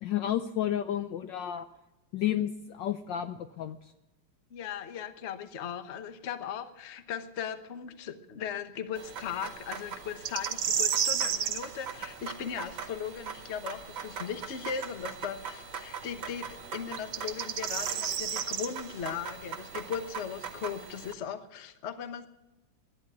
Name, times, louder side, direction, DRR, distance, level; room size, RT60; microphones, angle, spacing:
voice 1, 0.0-1.7 2.1-3.9, left 11 dB, 70° left, 10 dB, 1.2 m, -31 dB
voice 2, 4.5-22.3, left 8 dB, 45° left, 10 dB, 1.0 m, -38 dB
sound 1, 8.9-21.1, right 6 dB, 65° right, 2.6 m, -42 dB
sound 2, 10.3-11.6 14.8-14.9 17.0-18.7, right 9 dB, 85° right, 2.0 m, -30 dB
11.5 x 10.0 x 9.3 m, 0.99 s
omnidirectional pair, 2.3 m